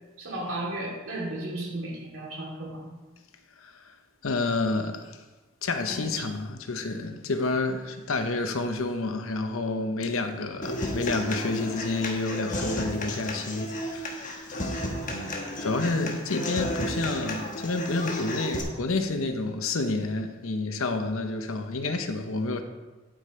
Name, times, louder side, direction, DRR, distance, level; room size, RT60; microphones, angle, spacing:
voice 1, 0.2-2.9 5.9-6.3 14.9-15.2 15.5-15.6, right 1 dB, 75° right, 2.7 m, -35 dB
voice 2, 4.2-5.2 5.6-14.4 15.6-22.6, left 3 dB, 85° left, 0.8 m, -29 dB
Human voice / Acoustic guitar, 10.6-18.6, left 1 dB, 40° left, 1.3 m, -33 dB
12.0 x 5.2 x 4.4 m
head